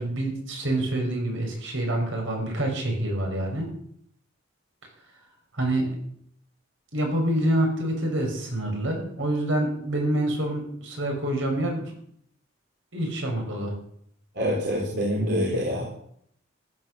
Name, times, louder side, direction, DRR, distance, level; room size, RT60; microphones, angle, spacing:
voice 1, 0.0-3.7 5.5-6.0 6.9-11.9 12.9-13.7, right 1 dB, 75° right, 1 dB, 5.9 m, -27 dB
voice 2, 14.4-15.9, equal, 55° right, -2 dB, 3.5 m, -25 dB
14.5 x 11.0 x 6.7 m, 0.68 s
head